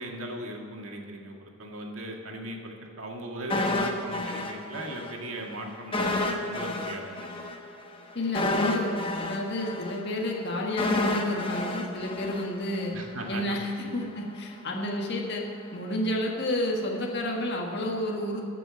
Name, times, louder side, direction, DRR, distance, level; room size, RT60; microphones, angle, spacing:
voice 1, 0.0-7.3 12.9-13.6 13.9-14.0, right 1 dB, 70° right, 1 dB, 1.9 m, -38 dB
sound 1, 3.5-5.1 5.4-5.5 5.9-13.0 13.3-13.4, left 2 dB, 25° left, 1.0 m, -30 dB
voice 2, 8.1-13.0 13.3-15.4 15.7-18.5, left 1 dB, 50° left, -1 dB, 1.6 m, -30 dB
14.0 x 6.2 x 8.6 m, 2.6 s
head